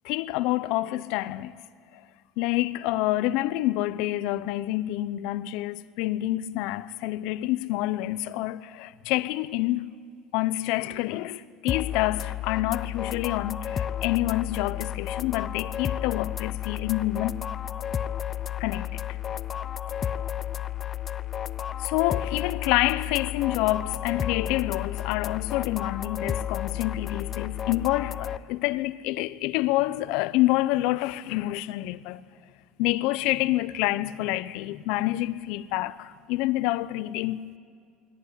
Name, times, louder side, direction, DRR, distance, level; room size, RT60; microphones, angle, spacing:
voice 1, 0.0-1.5 2.4-9.8 10.3-17.4 18.6-19.1 21.8-32.2 32.8-37.4, left 16 dB, 75° left, 0.8 m, -27 dB
sound 1, 11.7-28.4, left 10 dB, 35° left, 0.6 m, -32 dB
21.0 x 17.0 x 9.7 m
supercardioid pair, 115°, 0 cm